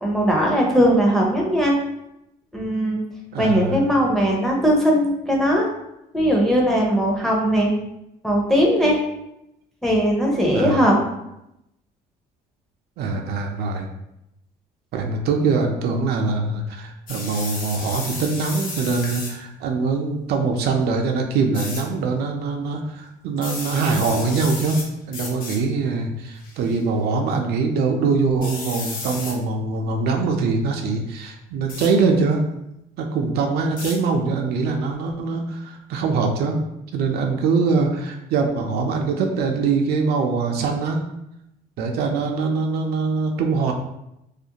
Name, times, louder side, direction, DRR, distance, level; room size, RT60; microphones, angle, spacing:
voice 1, 0.0-1.8 2.5-3.0 3.4-5.7 6.1-7.7 8.2-9.0 9.8-11.0, equal, ahead, -2 dB, 0.6 m, -19 dB
voice 2, 3.3-3.8 10.5-10.9 13.0-13.9 14.9-24.8 25.1-32.4 33.0-36.6 36.9-41.0 41.8-43.7, right 4 dB, 70° right, 3 dB, 0.4 m, -23 dB
sound 1, 17.1-19.4 21.5-21.8 23.4-24.8 25.1-25.6 26.4-26.7 28.4-29.3 31.7-31.9 33.8-33.9, left 3 dB, 55° left, 0.7 m, -33 dB
2.4 x 2.1 x 2.8 m, 0.85 s
cardioid pair, 110°, 17 cm